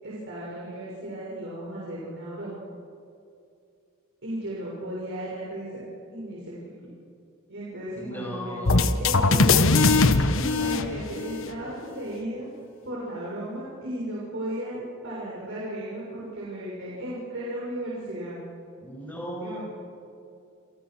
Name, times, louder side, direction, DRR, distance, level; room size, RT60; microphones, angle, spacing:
voice 1, 0.0-2.7 4.2-6.7 7.5-9.6 10.3-12.5 12.8-18.4 19.4-19.6, right 1 dB, 60° right, -6 dB, 6.4 m, -35 dB
voice 2, 8.0-9.9 18.8-19.6, equal, 10° left, -1 dB, 6.8 m, -37 dB
sound 1, 8.7-11.5, left 3 dB, 65° left, 1.3 m, -20 dB
29.5 x 28.5 x 6.3 m, 2.5 s
head